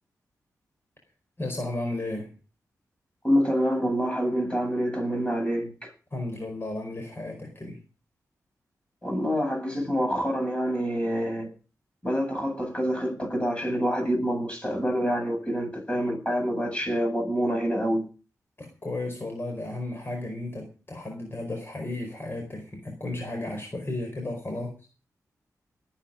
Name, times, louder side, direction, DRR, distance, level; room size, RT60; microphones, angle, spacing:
voice 1, 1.4-2.4 6.1-7.8 18.6-24.7, left 2 dB, 40° left, 4.7 m, -34 dB
voice 2, 3.2-5.9 9.0-11.5 12.0-18.0, equal, 15° left, 7.9 m, -26 dB
19.5 x 9.3 x 5.2 m
cardioid pair, 65°, 6 cm